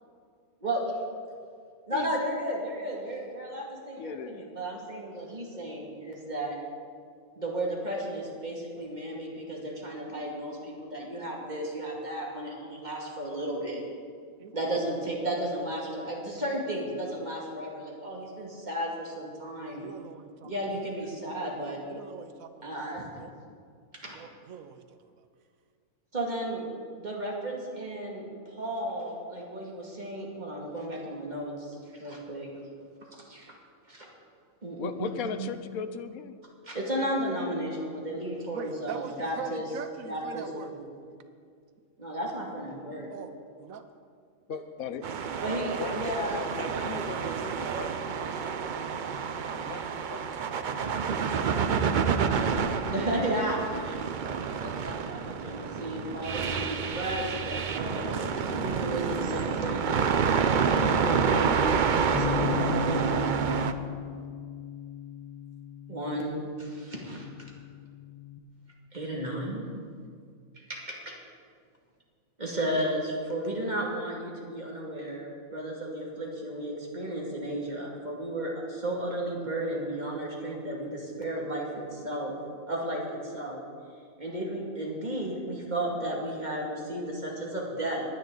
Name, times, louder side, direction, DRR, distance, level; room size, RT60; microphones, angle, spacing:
voice 1, 1.9-6.6 7.4-13.8 14.5-19.8 20.4-21.8 22.6-23.1 24.0-24.2 26.1-26.7 27.0-32.5 33.1-33.5 33.9-34.1 34.6-35.1 35.4-35.5 36.6-39.7 40.1-40.7 42.0-43.1 45.4-46.5 52.3-52.6 52.9-54.0 54.6-60.3 60.6-63.1 65.9-67.3 68.9-69.6 70.7-71.0 72.4-82.3 82.7-83.6 84.2-88.0, right 1 dB, 30° right, -2 dB, 2.3 m, -34 dB
voice 2, 3.9-4.5 34.8-36.4 44.8-45.3, left 6 dB, 80° left, 11 dB, 1.1 m, -36 dB
voice 3, 19.6-20.5 21.9-23.3 24.1-25.2 38.5-40.7 42.0-42.1 43.1-43.9, right 7 dB, 75° right, 9 dB, 1.2 m, -43 dB
sound 1, 45.0-63.7, right 6 dB, 55° right, 0.5 m, -28 dB
voice 4, 45.5-48.5 49.6-50.3 51.5-52.2, left 5 dB, 55° left, 6 dB, 0.7 m, -41 dB
Bass guitar, 62.1-68.4, left 10 dB, 20° left, 1.0 m, -37 dB
20.5 x 9.7 x 3.9 m, 2.2 s
omnidirectional pair, 1.5 m